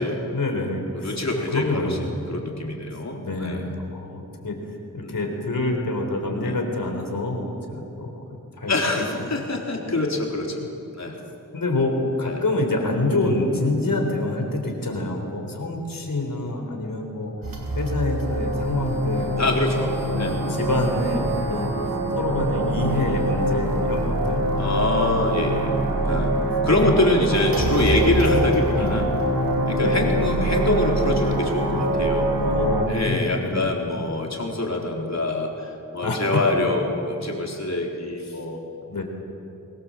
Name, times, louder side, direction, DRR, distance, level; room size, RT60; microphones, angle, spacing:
voice 1, 0.3-2.2 3.2-4.6 4.9-9.0 9.4-9.5 11.5-17.3 17.8-19.3 20.0-24.4 26.8-27.7 28.4-29.0 29.8-30.0 32.4-33.7 36.0-36.2 38.2-38.4 38.9-39.0, left 2 dB, 75° left, 3 dB, 4.1 m, -27 dB
voice 2, 0.9-3.6 5.0-5.2 6.4-6.6 8.7-10.7 10.9-11.2 12.2-12.4 19.4-20.4 24.6-25.7 26.1-26.4 26.6-29.1 29.7-32.3 32.9-38.6, left 2 dB, 50° left, 0 dB, 4.1 m, -25 dB
sound 1, 17.4-32.8, right 1 dB, 80° right, 2.8 m, -24 dB
25.0 x 20.5 x 7.7 m, 2.8 s
wide cardioid pair, 55°, 34 cm